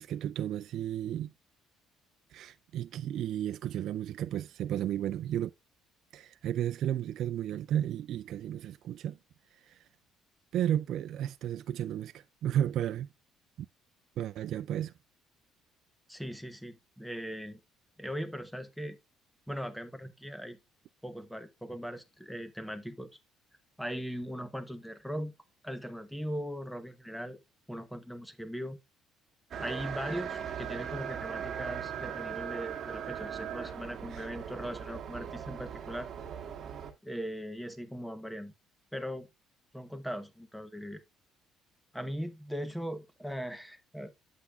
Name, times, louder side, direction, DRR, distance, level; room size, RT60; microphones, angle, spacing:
voice 1, 0.0-1.3 2.3-5.5 6.1-9.2 9.5-9.9 10.5-13.1 14.2-14.9 34.1-34.3, right 11 dB, 60° right, 0.3 m, -33 dB
voice 2, 16.1-17.6 18.0-19.0 19.5-20.6 21.0-23.1 23.8-25.3 25.6-27.4 27.7-28.8 29.6-36.1 37.0-38.5 38.9-39.3 39.7-41.0 41.9-44.1, equal, ahead, 0.8 m, -39 dB
sound 1, 29.5-36.9, right 8 dB, 40° right, 1.6 m, -39 dB
8.2 x 8.0 x 2.3 m
cardioid pair, 145°, 0 cm